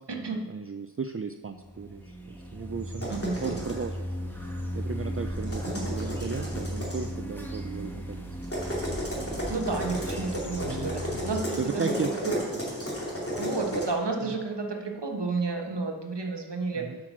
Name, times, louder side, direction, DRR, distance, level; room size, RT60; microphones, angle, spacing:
voice 1, 0.0-4.0 4.4-8.3 8.8-9.4 10.6-10.9 11.6-12.6 14.2-14.4 16.7-17.0, right 5 dB, 35° right, 8 dB, 0.5 m, -36 dB
sound 1, 1.6-11.3, equal, 5° left, 1.4 m, -36 dB
sound 2, 3.0-3.8 5.4-7.1 8.4-13.8, equal, 35° left, 3.1 m, -34 dB
voice 2, 3.1-3.7 5.6-6.1 9.5-12.4 13.3-16.9, right 3 dB, 80° right, 2 dB, 1.4 m, -31 dB
8.6 x 6.0 x 6.2 m, 1.3 s
wide cardioid pair, 45°, 41 cm